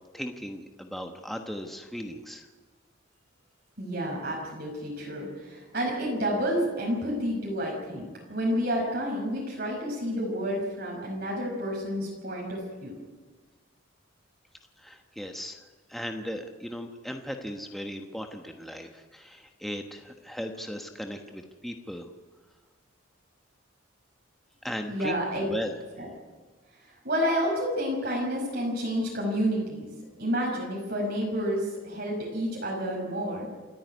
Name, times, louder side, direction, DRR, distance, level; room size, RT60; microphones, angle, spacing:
voice 1, 0.1-2.5 14.8-15.6 15.9-22.1 24.6-25.7, equal, ahead, 4 dB, 1.2 m, -37 dB
voice 2, 3.8-12.9 24.9-25.5 26.0-26.1 26.8-29.9 30.2-33.5, equal, 50° right, -2 dB, 5.3 m, -30 dB
28.0 x 10.0 x 9.6 m, 1.4 s
head